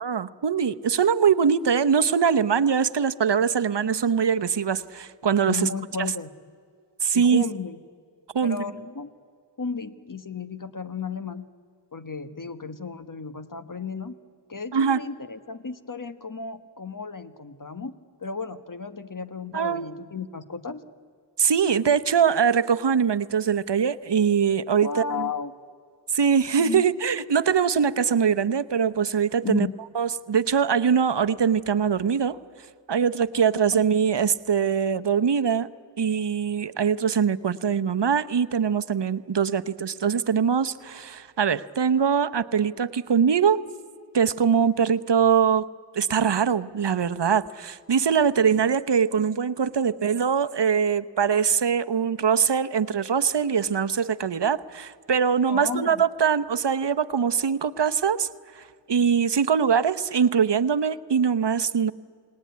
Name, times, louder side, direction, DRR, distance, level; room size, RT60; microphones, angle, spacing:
voice 1, 0.0-5.6 7.0-7.4 8.3-8.6 14.7-15.0 19.5-19.9 21.4-24.9 26.1-29.7 29.9-32.4 32.9-35.7 36.0-43.6 44.1-45.7 45.9-58.3 58.6-58.7 58.9-61.9, right 7 dB, 65° right, 11 dB, 0.9 m, -22 dB
voice 2, 5.5-6.3 7.1-7.8 8.4-9.1 9.6-11.5 11.9-14.2 14.5-20.8 24.8-25.5 26.6-26.9 29.4-29.7 33.7-33.8 55.5-56.0, left 5 dB, 45° left, 11 dB, 1.3 m, -34 dB
29.5 x 18.5 x 9.4 m, 2.2 s
wide cardioid pair, 50°, 45 cm